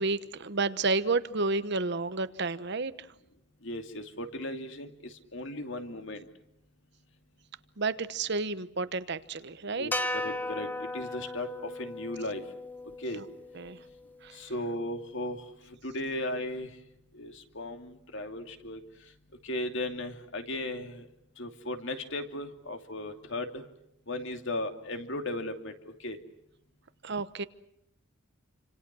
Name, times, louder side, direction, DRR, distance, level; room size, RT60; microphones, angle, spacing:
voice 1, 0.0-2.9 7.8-9.9 13.1-13.2 13.5-13.8 14.2-14.4 27.0-27.5, right 3 dB, 50° right, 13 dB, 1.0 m, -31 dB
voice 2, 3.6-6.2 9.7-12.4 13.0-13.2 14.3-16.7 17.1-18.8 19.4-21.1 21.4-23.6 24.1-26.2, left 1 dB, 60° left, 6 dB, 2.7 m, -36 dB
sound 1, 9.9-14.3, left 2 dB, 10° left, 0.9 m, -36 dB
28.5 x 26.0 x 6.2 m, 0.78 s
head